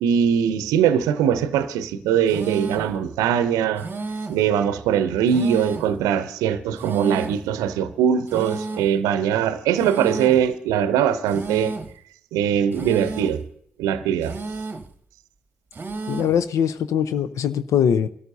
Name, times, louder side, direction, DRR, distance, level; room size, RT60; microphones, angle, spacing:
voice 1, 0.0-3.9 4.3-11.7 12.3-13.4 13.8-14.4, right 8 dB, 75° right, 0.7 m, -21 dB
sound 1, 2.3-3.0 3.8-4.5 5.3-6.0 6.8-7.5 8.3-9.0 9.8-10.5 11.3-12.0 12.7-13.4 14.2-14.9 15.7-16.4, right 3 dB, 30° right, 1.0 m, -32 dB
voice 2, 16.1-18.1, left 8 dB, 65° left, 0.6 m, -21 dB
27.0 x 13.5 x 2.7 m
hypercardioid pair, 45°, 6 cm